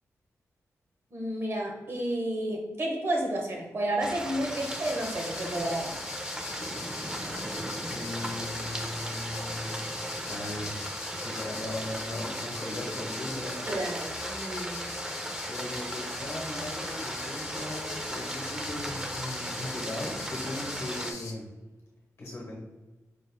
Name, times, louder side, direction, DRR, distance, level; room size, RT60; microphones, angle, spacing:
voice 1, 1.1-6.0 13.6-14.9, right 1 dB, 50° right, 0 dB, 1.0 m, -31 dB
sound 1, 4.0-21.1, right 1 dB, 15° right, 0.4 m, -37 dB
sound 2, 4.4-21.3, left 4 dB, 80° left, 0.7 m, -42 dB
voice 2, 7.9-9.8 10.3-10.8 11.2-13.7 15.5-21.5 22.2-22.6, left 1 dB, 55° left, -2 dB, 1.1 m, -38 dB
sound 3, 17.2-21.2, right 1 dB, 80° right, 1.3 m, -50 dB
5.1 x 3.6 x 2.3 m, 1.1 s
wide cardioid pair, 115°, 6 cm